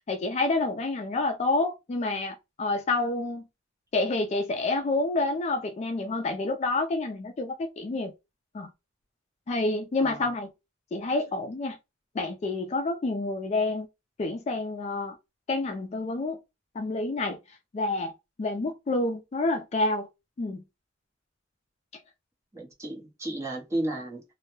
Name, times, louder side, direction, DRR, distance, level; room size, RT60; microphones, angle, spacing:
voice 1, 0.1-3.5 3.9-8.1 8.5-8.7 9.5-10.5 10.9-11.8 12.1-13.9 14.2-15.1 15.5-16.4 16.8-17.4 17.7-18.1 18.4-20.1 20.4-20.6, left 2 dB, 35° left, 0.3 m, -28 dB
voice 2, 22.5-24.2, right 1 dB, 15° right, 0.8 m, -33 dB
2.1 x 2.0 x 2.9 m
head